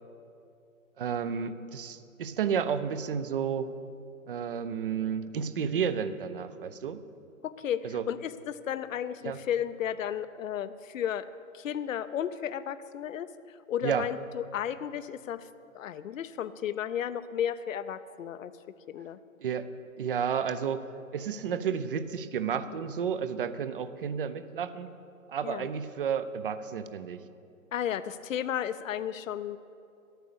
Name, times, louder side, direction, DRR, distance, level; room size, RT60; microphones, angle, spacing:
voice 1, 1.0-3.7 4.3-7.0 7.8-8.1 9.2-9.4 13.8-14.1 19.4-19.7 20.0-20.9 21.1-24.9 25.3-27.2, right 7 dB, 40° right, 13 dB, 0.6 m, -31 dB
voice 2, 7.4-13.3 13.7-15.5 15.7-18.5 18.9-19.2 25.4-25.7 27.7-29.6, left 9 dB, 65° left, 13 dB, 0.7 m, -33 dB
12.0 x 9.2 x 6.8 m, 2.5 s
hypercardioid pair, 150°, 42 cm